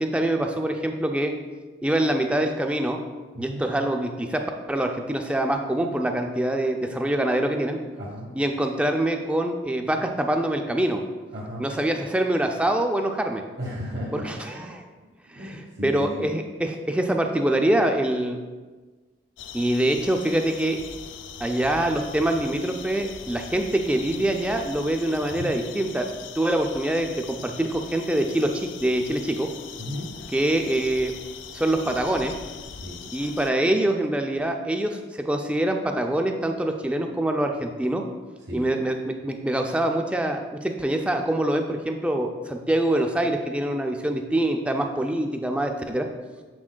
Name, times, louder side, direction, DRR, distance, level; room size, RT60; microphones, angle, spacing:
voice 1, 0.0-1.3 1.8-3.0 3.4-7.8 8.3-11.0 11.6-13.4 14.1-14.8 15.3-18.4 19.5-20.8 21.4-26.1 26.4-29.5 30.3-31.1 31.5-32.4 33.1-38.0 38.5-46.1, right 1 dB, 5° right, 4 dB, 0.3 m, -25 dB
voice 2, 3.3-3.7 8.0-8.3 11.3-11.6 13.6-14.7 15.2-16.3 25.3-25.5 29.8-30.1 32.7-33.0 38.5-38.6, equal, 60° right, -6 dB, 0.9 m, -35 dB
sound 1, 19.4-33.5, left 7 dB, 75° left, 0.4 m, -41 dB
7.1 x 6.0 x 2.2 m, 1.3 s
head